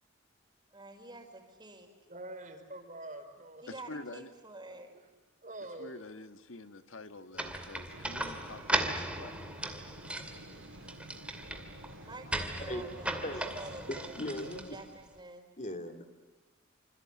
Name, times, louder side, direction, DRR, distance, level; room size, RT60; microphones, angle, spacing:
voice 1, 0.7-1.9 3.6-5.0 12.0-14.1 14.7-15.5, right 2 dB, 20° right, 4 dB, 5.2 m, -48 dB
voice 2, 2.1-3.6 4.9-5.1 5.4-5.9, right 1 dB, 40° right, 6 dB, 4.9 m, -45 dB
voice 3, 3.7-4.3 5.8-9.8, left 2 dB, 75° left, 8 dB, 1.5 m, -47 dB
sound 1, 7.3-15.0, right 1 dB, 5° right, 2.3 m, -37 dB
sound 2, 7.9-14.6, right 1 dB, 80° right, 6.1 m, -50 dB
voice 4, 14.2-14.8 15.6-16.0, left 1 dB, 35° left, 6 dB, 2.7 m, -38 dB
27.5 x 26.5 x 7.4 m, 1.3 s
head